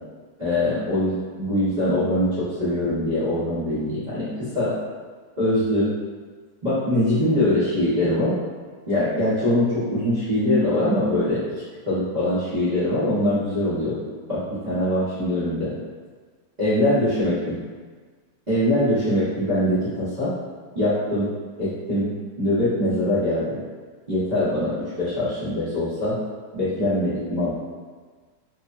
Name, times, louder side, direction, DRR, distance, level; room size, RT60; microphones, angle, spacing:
voice 1, 0.4-4.7 5.4-5.9 6.6-8.3 8.9-11.4 11.9-14.0 14.3-15.7 16.6-17.6 18.5-20.3 20.7-21.3 21.6-23.6 24.1-26.2 26.5-27.5, left 1 dB, 50° right, -14 dB, 0.5 m, -23 dB
3.1 x 2.1 x 2.4 m, 1.5 s
omnidirectional pair, 2.1 m